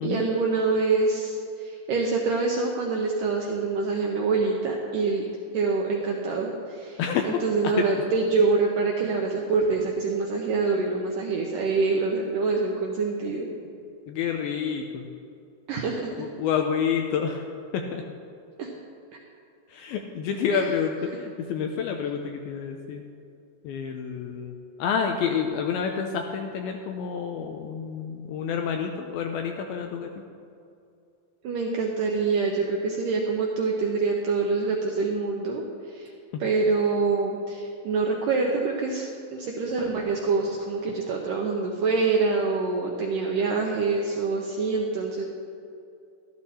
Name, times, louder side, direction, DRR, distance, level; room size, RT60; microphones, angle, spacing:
voice 1, 0.0-5.2 5.5-13.5 15.7-16.1 18.6-18.7 20.5-20.7 31.4-36.1 36.4-45.2, right 4 dB, 80° right, 0 dB, 1.9 m, -25 dB
voice 2, 14.1-15.0 16.2-17.4 17.7-18.0 19.7-23.0 23.6-24.5 24.8-30.1 36.3-36.4, left 7 dB, 80° left, 4 dB, 2.2 m, -28 dB
12.5 x 12.5 x 4.2 m, 2.6 s
omnidirectional pair, 4.9 m